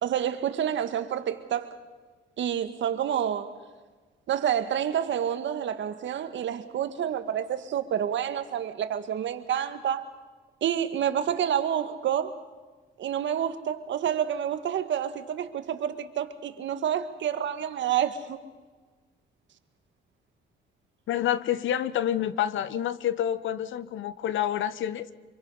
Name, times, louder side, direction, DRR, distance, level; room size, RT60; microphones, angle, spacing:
voice 1, 0.0-1.8 2.4-3.6 4.3-10.0 10.6-12.4 13.0-18.4, right 9 dB, 70° right, 1.6 m, -28 dB
voice 2, 21.1-25.1, left 10 dB, 75° left, 1.0 m, -28 dB
26.0 x 24.0 x 5.6 m
cardioid pair, 90°, 20 cm